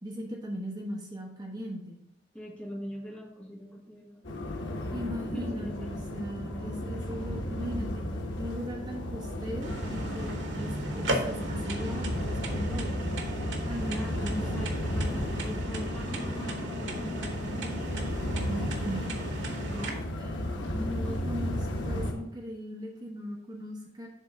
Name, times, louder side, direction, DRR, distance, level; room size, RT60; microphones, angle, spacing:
voice 1, 0.0-2.0 4.9-8.0 8.4-10.3 10.6-12.9 13.6-14.6 18.5-19.2 20.2-24.1, equal, 20° right, 0 dB, 0.9 m, -38 dB
voice 2, 2.3-5.0 5.3-5.9 13.9-17.3 19.7-20.1 20.5-21.6, equal, 5° left, -1 dB, 1.0 m, -43 dB
sound 1, 4.2-22.1, left 1 dB, 90° left, 1.0 m, -34 dB
sound 2, 9.6-19.9, right 1 dB, 85° right, 1.1 m, -36 dB
7.4 x 3.4 x 5.2 m, 0.81 s
head